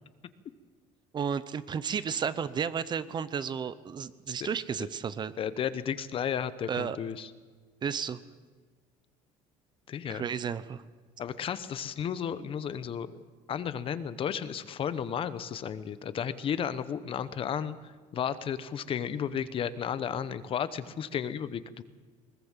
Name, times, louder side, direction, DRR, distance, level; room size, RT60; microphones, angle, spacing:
voice 1, 1.1-5.3 6.7-7.0 7.8-8.2 10.1-10.8, right 7 dB, 30° right, 15 dB, 0.8 m, -32 dB
voice 2, 5.4-7.3 9.9-10.2 11.2-13.2 13.5-21.8, left 8 dB, 40° left, 14 dB, 0.9 m, -33 dB
21.0 x 19.0 x 7.4 m, 1.4 s
cardioid pair, 130°, 14 cm